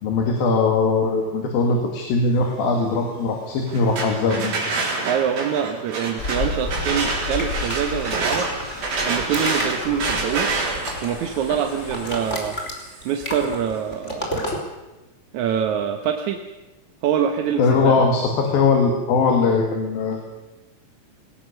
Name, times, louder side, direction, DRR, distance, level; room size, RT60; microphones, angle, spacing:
voice 1, 0.0-4.5 17.6-20.2, left 4 dB, 80° left, 2 dB, 3.9 m, -20 dB
sound 1, 3.7-13.5, right 3 dB, 85° right, 6.2 m, -28 dB
voice 2, 5.0-8.5 9.1-10.5 11.0-12.6 13.1-14.3 15.3-16.4 17.0-18.1, right 8 dB, 65° right, 6 dB, 2.1 m, -25 dB
Stream, 6.2-12.4, left 4 dB, 40° left, 1.7 m, -33 dB
sound 2, 7.4-8.8 9.1-11.2 11.5-14.6, equal, 20° left, 3.5 m, -31 dB
20.5 x 19.0 x 6.7 m, 1.1 s
omnidirectional pair, 4.1 m